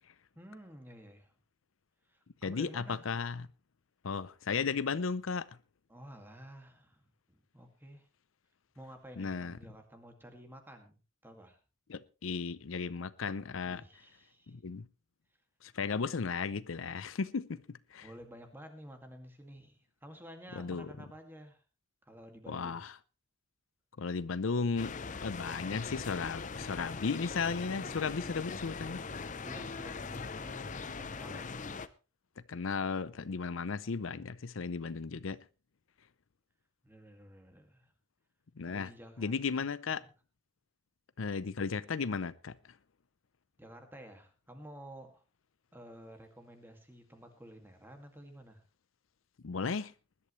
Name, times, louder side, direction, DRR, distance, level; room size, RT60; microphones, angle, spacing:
voice 1, 0.4-1.3 2.1-3.1 5.9-8.1 8.8-11.6 13.6-14.6 18.0-21.6 22.1-22.8 28.8-31.9 36.8-37.9 38.6-39.6 40.0-40.1 43.6-45.2 45.7-48.6, equal, 10° right, 2.1 m, -52 dB
voice 2, 2.4-3.5 4.0-5.5 9.2-9.6 11.9-13.8 14.5-14.9 15.6-18.1 20.5-20.9 22.5-22.9 24.0-24.9 25.2-29.0 32.5-35.4 38.6-38.9 39.2-40.0 41.2-42.6 49.4-49.9, left 5 dB, 85° left, 0.6 m, -35 dB
sound 1, 24.8-31.9, left 4 dB, 40° left, 0.7 m, -41 dB
20.0 x 11.5 x 3.2 m
head